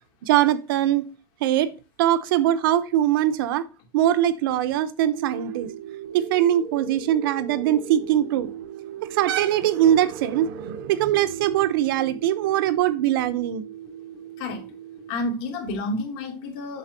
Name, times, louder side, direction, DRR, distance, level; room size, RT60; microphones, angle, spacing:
voice 1, 0.2-1.0 1.4-1.7 2.0-3.7 3.9-5.7 6.1-8.5 9.0-13.6, right 12 dB, 90° right, 0.8 m, -22 dB
sound 1, 5.1-15.1, right 8 dB, 70° right, 3.6 m, -38 dB
voice 2, 15.1-16.8, left 2 dB, 55° left, 2.9 m, -30 dB
7.9 x 6.0 x 2.7 m
supercardioid pair, 165°, 11 cm